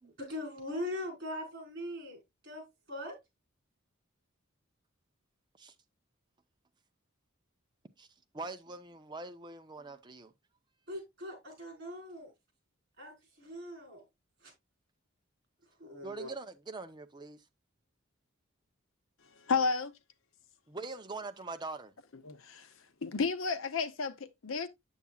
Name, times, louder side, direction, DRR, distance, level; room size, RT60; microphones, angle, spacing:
voice 1, 0.2-3.2 10.9-12.3 13.0-14.0 14.4-14.5 15.8-16.3, left 1 dB, 50° right, 4.6 m, -41 dB
voice 2, 8.3-10.3 16.0-17.4 20.7-22.0, right 3 dB, 20° right, 0.6 m, -43 dB
voice 3, 19.4-19.9 22.2-22.7 23.0-24.7, left 4 dB, 75° left, 0.8 m, -32 dB
8.3 x 7.1 x 2.3 m
head